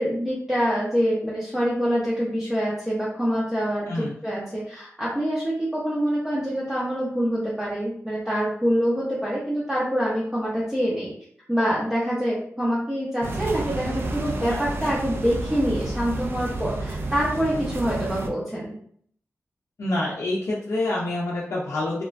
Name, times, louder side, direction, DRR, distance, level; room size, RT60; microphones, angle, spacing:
voice 1, 0.0-11.1 11.5-18.7, equal, 10° right, -8 dB, 0.6 m, -25 dB
sound 1, 13.2-18.3, right 2 dB, 50° right, 0.3 m, -30 dB
voice 2, 14.5-14.9 19.8-22.0, left 2 dB, 70° left, -5 dB, 0.5 m, -27 dB
3.0 x 2.2 x 2.5 m, 0.62 s
wide cardioid pair, 135°, 5 cm